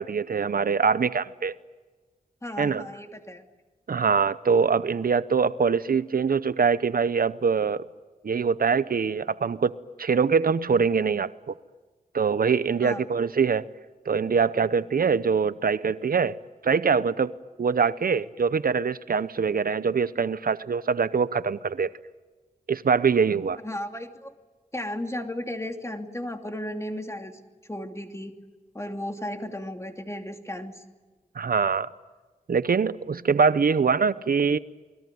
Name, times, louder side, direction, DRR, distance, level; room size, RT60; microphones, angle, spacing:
voice 1, 0.0-1.5 2.6-2.9 3.9-7.8 8.2-9.7 10.0-11.5 12.1-13.7 14.1-16.4 16.6-17.3 17.6-21.9 22.7-23.6 31.4-31.9 32.5-34.6, right 5 dB, 70° right, 15 dB, 0.8 m, -23 dB
voice 2, 2.4-3.4 12.8-13.0 23.6-24.3 24.7-27.4 27.7-28.3 28.7-30.7, left 1 dB, 20° left, 5 dB, 2.7 m, -34 dB
29.0 x 21.0 x 9.3 m, 1.3 s
wide cardioid pair, 60°, 15 cm